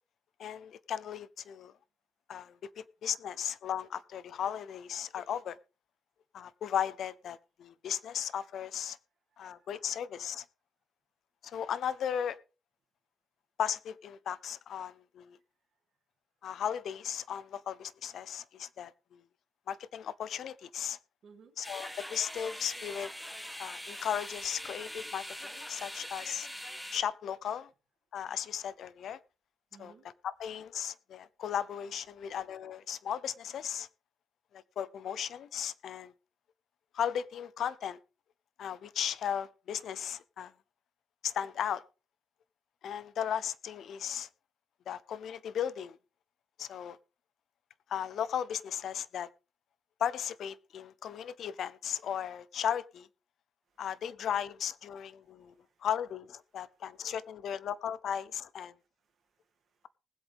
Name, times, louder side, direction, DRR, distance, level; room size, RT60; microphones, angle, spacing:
voice 1, 0.4-1.7 2.3-5.6 6.3-9.0 9.4-10.5 11.4-12.4 13.6-15.4 16.4-19.2 19.7-21.0 21.6-23.1 23.6-26.5 26.9-27.7 28.1-29.2 29.8-29.9 30.2-33.9 34.5-36.1 36.9-38.0 38.6-40.5 41.2-41.8 42.8-44.3 44.9-46.0 46.6-47.0 47.9-49.3 50.0-53.1 53.8-55.5 55.8-58.7, left 9 dB, 70° left, 0.7 m, -36 dB
voice 2, 9.5-9.9 21.2-21.6 29.7-30.1 53.7-53.8 55.2-55.9 56.7-56.8 58.7-59.9, right 5 dB, 55° right, 2.7 m, -62 dB
sound 1, 21.6-27.0, equal, 5° left, 1.3 m, -42 dB
20.0 x 8.0 x 3.6 m
cardioid pair, 110°, 0 cm